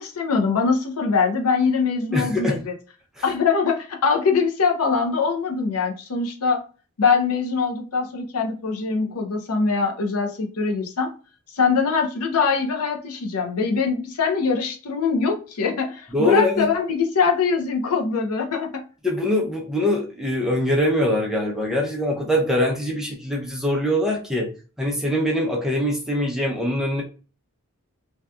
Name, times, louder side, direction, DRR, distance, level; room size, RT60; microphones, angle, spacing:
voice 1, 0.0-2.7 3.2-6.6 7.0-11.1 11.5-18.8, left 5 dB, 90° left, 3 dB, 0.6 m, -22 dB
voice 2, 2.1-2.6 3.2-3.3 16.1-16.7 19.0-24.5 24.8-27.0, left 1 dB, ahead, -2 dB, 0.5 m, -23 dB
2.7 x 2.3 x 2.2 m, 0.36 s
head